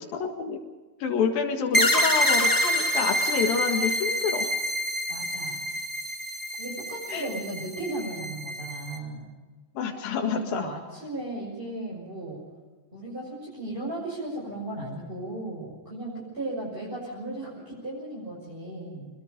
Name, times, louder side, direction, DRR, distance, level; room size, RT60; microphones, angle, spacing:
voice 1, 0.1-0.6 1.0-4.5 7.1-7.3 9.8-10.6, left 6 dB, 80° left, 2 dB, 3.6 m, -28 dB
sound 1, 1.7-9.0, equal, 10° left, 1.4 m, -27 dB
voice 2, 5.1-5.6 6.6-9.3 10.1-12.4 12.9-19.1, right 2 dB, 15° right, -6 dB, 6.3 m, -36 dB
25.5 x 21.5 x 5.3 m, 1.3 s
omnidirectional pair, 4.0 m